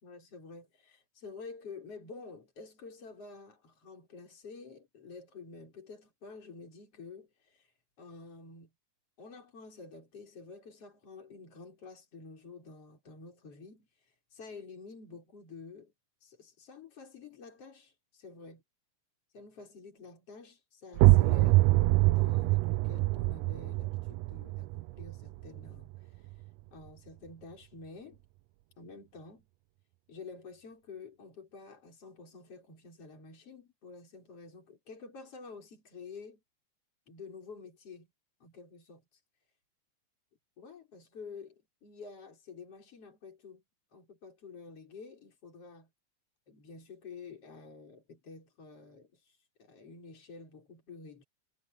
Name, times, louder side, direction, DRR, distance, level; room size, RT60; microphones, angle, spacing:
voice 1, 0.0-7.7 8.0-8.7 9.2-13.9 14.3-15.9 16.2-18.6 19.3-26.3 26.7-28.2 28.8-29.5 30.1-36.4 37.1-38.1 38.4-39.0 40.6-43.6 43.9-45.9 46.5-51.2, left 4 dB, 45° left, 6.7 m, -49 dB
sound 1, 20.9-26.5, right 20 dB, 90° right, 1.5 m, -25 dB
omnidirectional pair, 3.6 m